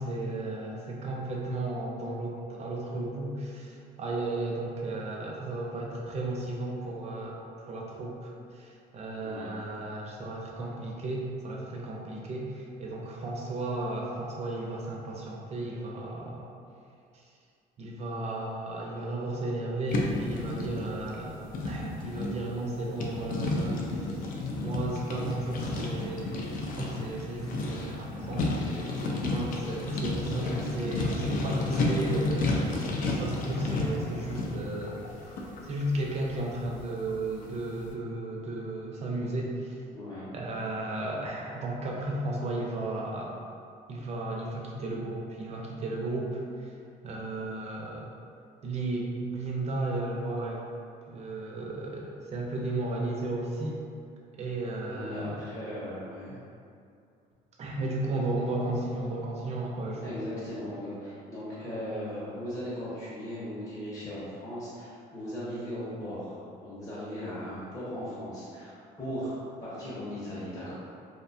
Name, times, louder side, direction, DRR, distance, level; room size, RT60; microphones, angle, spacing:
voice 1, 0.0-7.4 7.7-16.5 17.1-17.3 17.8-39.8 40.3-43.3 43.9-46.7 47.0-48.1 48.6-50.6 51.1-53.8 54.3-55.4 57.6-60.2, right 2 dB, 40° right, -2 dB, 0.5 m, -34 dB
sound 1, 19.9-37.5, left 2 dB, 55° left, 0.4 m, -32 dB
voice 2, 39.9-40.3 54.9-56.4 60.0-66.4 66.6-70.7, equal, 20° left, -11 dB, 0.7 m, -38 dB
2.6 x 2.2 x 2.5 m, 2.4 s
cardioid pair, 110°, 17 cm